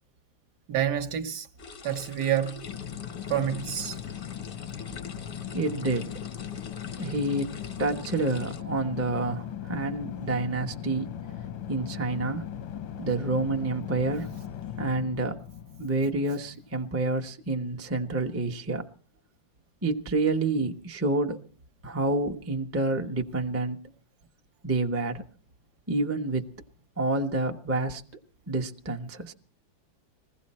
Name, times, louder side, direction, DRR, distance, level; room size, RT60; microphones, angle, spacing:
voice 1, 0.7-1.5 1.8-2.7 3.3-4.0, right 10 dB, 60° right, 1.4 m, -28 dB
sound 1, 1.6-8.6, left 4 dB, 50° left, 0.6 m, -45 dB
sound 2, 2.6-17.0, left 10 dB, 85° left, 1.7 m, -38 dB
voice 2, 5.5-6.1 7.0-11.1 11.7-12.5 13.0-14.3 14.8-15.4 15.8-18.8 19.8-21.4 21.8-23.8 24.6-25.2 25.9-26.4 27.0-28.0 28.5-29.3, right 2 dB, 15° right, 0.4 m, -28 dB
21.0 x 16.0 x 4.3 m
omnidirectional pair, 2.1 m